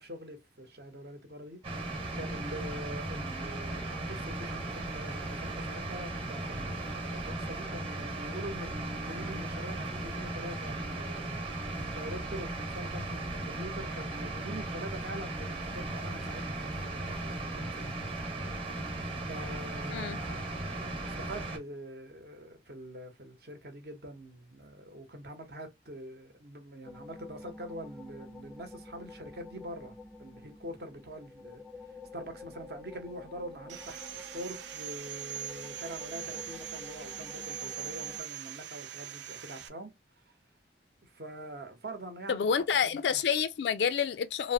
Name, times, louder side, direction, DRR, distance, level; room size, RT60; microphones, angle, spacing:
voice 1, 0.0-11.4 11.9-17.9 19.3-31.6 32.1-39.9 41.0-42.5 43.1-43.2, right 1 dB, 60° right, 0.9 m, -44 dB
sound 1, 1.6-21.6, right 2 dB, 30° right, 1.0 m, -37 dB
sound 2, 26.8-38.2, left 2 dB, ahead, 0.4 m, -49 dB
Sawing, 33.7-39.7, right 10 dB, 85° right, 0.5 m, -42 dB
voice 2, 42.3-44.5, left 7 dB, 75° left, 0.3 m, -28 dB
3.0 x 2.1 x 2.7 m
head